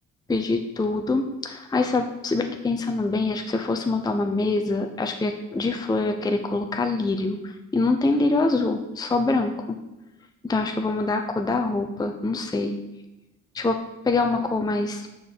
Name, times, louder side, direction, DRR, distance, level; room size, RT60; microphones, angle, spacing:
voice 1, 0.3-9.8 10.4-12.8 13.5-15.1, left 3 dB, 15° left, 5 dB, 0.6 m, -25 dB
6.2 x 4.7 x 5.0 m, 1.0 s
supercardioid pair, 60°, 31 cm